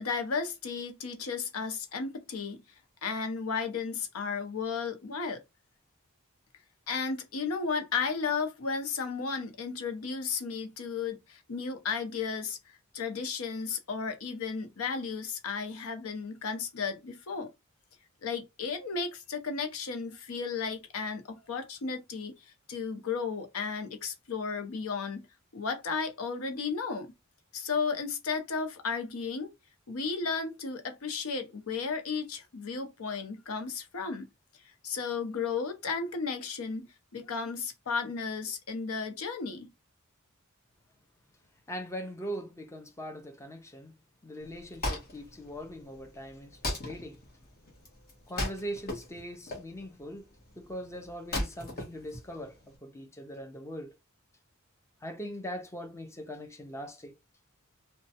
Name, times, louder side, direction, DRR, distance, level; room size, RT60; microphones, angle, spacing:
voice 1, 0.0-2.6 3.0-5.4 6.9-12.6 12.9-17.5 18.2-22.4 22.7-25.2 25.5-27.1 27.5-29.5 29.9-34.3 34.8-39.7, left 5 dB, 90° left, 0.7 m, -34 dB
voice 2, 41.7-44.0 44.2-47.2 48.3-50.3 50.6-54.0 55.0-57.2, equal, 15° left, 0.6 m, -41 dB
Wood, 44.4-52.8, left 1 dB, 45° left, 1.2 m, -38 dB
3.1 x 2.2 x 2.8 m
head